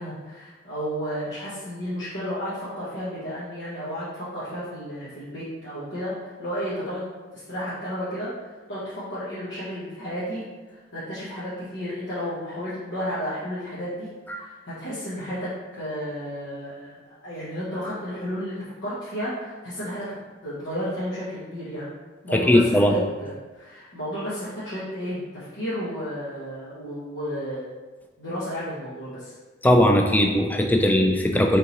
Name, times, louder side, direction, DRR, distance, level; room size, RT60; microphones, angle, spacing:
voice 1, 0.0-10.4 10.7-20.1 20.4-21.9 22.2-27.7 28.2-29.4, equal, 75° left, -11 dB, 1.1 m, -33 dB
voice 2, 22.3-22.9 29.6-31.6, left 1 dB, 10° left, 2 dB, 0.4 m, -19 dB
4.0 x 3.6 x 2.9 m, 1.3 s
head